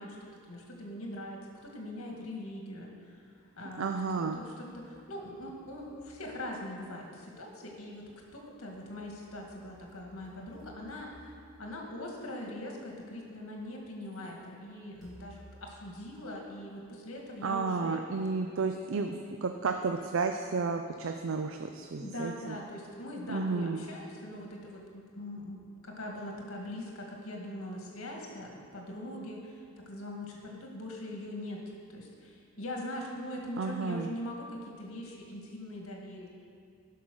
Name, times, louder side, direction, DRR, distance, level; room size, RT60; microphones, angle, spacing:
voice 1, 0.0-3.2 3.6-3.9 4.2-18.0 22.0-31.6 31.9-36.3, left 1 dB, 80° left, 0 dB, 1.7 m, -42 dB
sound 1, 3.2-4.2 4.7-7.1 8.3-12.7 13.5-13.6 15.0-16.9, equal, 20° right, 2.8 m, -59 dB
voice 2, 3.8-4.4 17.4-22.6 23.3-23.8 33.6-34.1, right 4 dB, 65° right, 5 dB, 0.4 m, -32 dB
11.5 x 5.6 x 6.2 m, 2.3 s
head